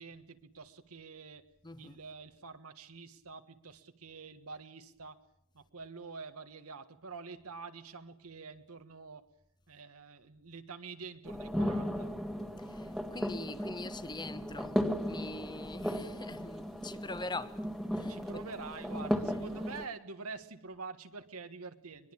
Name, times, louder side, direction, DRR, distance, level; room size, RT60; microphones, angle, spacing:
voice 1, 0.0-1.4 1.8-5.2 5.5-9.3 9.7-12.1 18.1-22.1, right 4 dB, 80° right, 1.6 m, -47 dB
voice 2, 1.6-2.0 12.6-17.7 17.9-18.4 19.3-19.5, left 2 dB, 20° left, 1.2 m, -43 dB
sound 1, 11.3-19.9, equal, ahead, 1.7 m, -36 dB
22.0 x 21.5 x 8.7 m
head